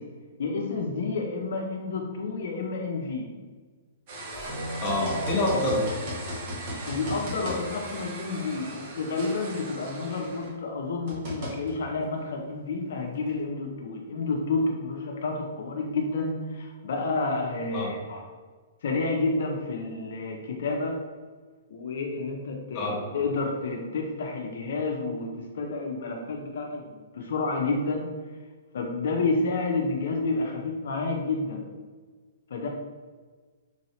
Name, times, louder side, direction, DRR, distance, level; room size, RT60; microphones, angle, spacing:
voice 1, 0.4-3.4 6.9-18.2 18.8-21.0 21.7-28.1 28.7-31.7 32.5-32.7, left 3 dB, 70° left, 1 dB, 0.5 m, -30 dB
sound 1, 4.1-10.6 11.1-11.7 13.2-13.3, right 1 dB, 45° right, 0.9 m, -37 dB
sound 2, 4.3-6.3, equal, 25° right, 1.3 m, -37 dB
voice 2, 4.8-6.0 17.7-17.9 22.7-23.0, left 1 dB, 25° left, -4 dB, 1.1 m, -26 dB
3.7 x 3.0 x 2.8 m, 1.4 s
hypercardioid pair, 150°, 0 cm